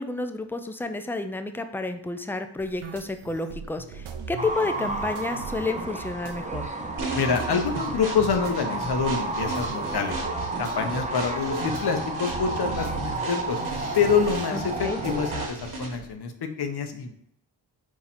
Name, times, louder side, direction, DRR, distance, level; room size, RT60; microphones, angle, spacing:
voice 1, 0.0-6.7 14.5-15.0, left 3 dB, 5° left, 8 dB, 0.3 m, -30 dB
sound 1, 2.6-15.8, right 6 dB, 85° right, 0.6 m, -40 dB
sound 2, 4.4-15.5, right 2 dB, 15° right, 0.7 m, -32 dB
sound 3, 7.0-16.1, right 2 dB, 40° right, 1.1 m, -37 dB
voice 2, 7.1-10.2 10.6-13.6 13.9-17.1, left 6 dB, 55° left, 6 dB, 0.8 m, -26 dB
4.4 x 2.4 x 4.1 m, 0.70 s
cardioid pair, 45°, 48 cm